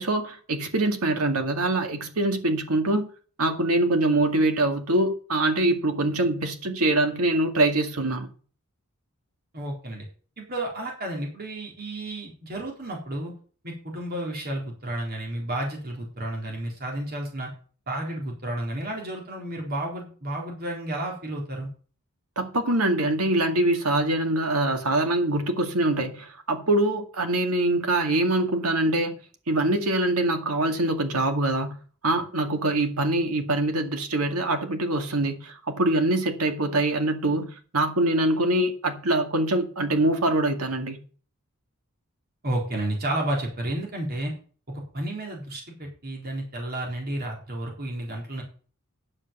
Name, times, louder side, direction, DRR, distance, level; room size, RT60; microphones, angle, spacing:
voice 1, 0.0-3.1 3.4-8.3 22.4-29.2 29.5-41.0, right 2 dB, 75° right, 2.0 m, -24 dB
voice 2, 9.5-10.0 10.4-13.3 13.6-17.5 17.9-21.7 42.4-44.3 44.7-48.4, right 1 dB, 45° right, 3.9 m, -31 dB
9.9 x 7.3 x 7.0 m
head